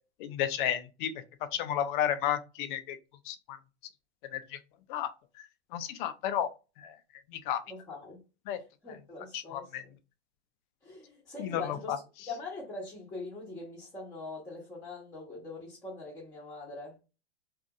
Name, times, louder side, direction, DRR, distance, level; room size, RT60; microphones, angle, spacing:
voice 1, 0.2-1.1 1.5-3.0 3.3-3.6 4.3-4.4 4.9-5.1 5.7-6.5 6.8-6.9 7.3-7.6 8.5-8.6 9.3-9.8 11.4-12.0, left 10 dB, 45° left, 0.5 m, -32 dB
voice 2, 7.7-8.2 8.5-9.9 10.8-17.0, left 3 dB, 10° left, 1.0 m, -43 dB
2.6 x 2.5 x 2.3 m
hypercardioid pair, 120°, 34 cm